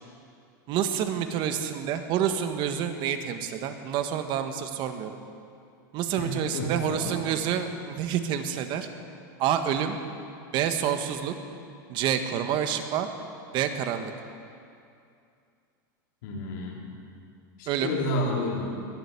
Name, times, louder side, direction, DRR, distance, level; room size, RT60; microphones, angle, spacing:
voice 1, 0.7-5.1 5.9-8.9 9.4-10.0 10.5-11.3 11.9-13.1 13.5-14.1 17.7-18.0, right 9 dB, 45° right, 7 dB, 1.4 m, -28 dB
voice 2, 6.5-7.2 16.2-16.8 17.6-18.7, left 1 dB, 70° left, -2 dB, 4.0 m, -30 dB
21.0 x 7.9 x 8.6 m, 2.5 s
supercardioid pair, 130°, 11 cm